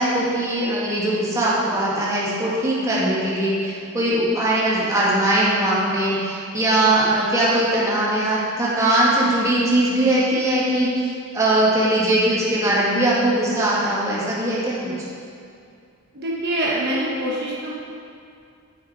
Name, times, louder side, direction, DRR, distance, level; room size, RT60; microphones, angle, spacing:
voice 1, 0.0-11.1 11.3-15.1, right 1 dB, 15° right, -7 dB, 1.8 m, -20 dB
voice 2, 16.1-17.7, right 1 dB, 50° right, -4 dB, 1.0 m, -24 dB
8.3 x 6.8 x 4.4 m, 2.4 s
head